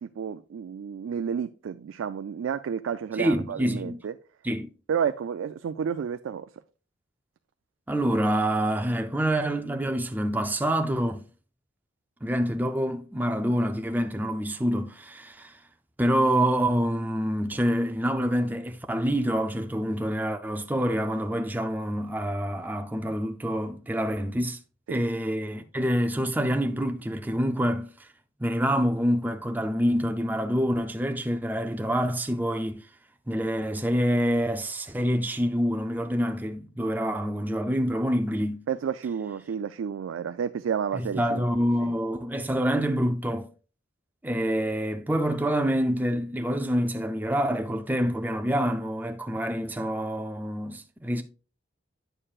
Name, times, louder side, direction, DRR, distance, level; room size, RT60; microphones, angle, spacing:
voice 1, 0.0-4.1 4.9-6.5 24.9-25.0 38.7-41.5 41.8-41.9, right 7 dB, 85° right, 0.3 m, -31 dB
voice 2, 3.2-4.0 4.4-4.7 7.9-11.3 12.2-15.6 16.0-24.6 24.9-28.1 28.4-32.8 33.3-38.6 40.9-43.5 44.2-51.2, equal, 10° right, 0.4 m, -26 dB
8.7 x 6.6 x 2.4 m
head